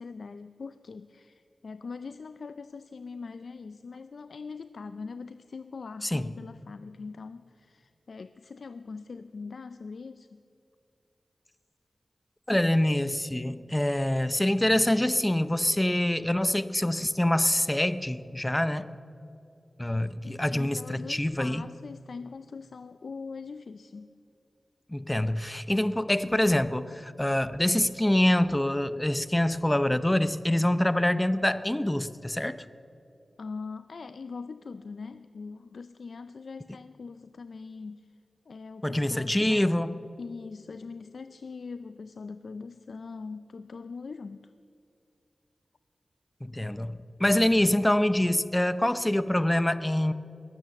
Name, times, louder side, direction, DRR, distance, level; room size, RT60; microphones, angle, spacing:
voice 1, 0.0-10.4 20.2-24.1 33.4-38.2 38.5-39.7 40.2-44.5, left 4 dB, 75° left, 12 dB, 0.4 m, -42 dB
voice 2, 12.5-18.9 19.8-21.7 24.9-32.6 38.8-39.9 46.4-50.1, left 1 dB, 15° left, 14 dB, 0.6 m, -25 dB
21.5 x 9.0 x 7.0 m, 2.6 s
wide cardioid pair, 65°, 0 cm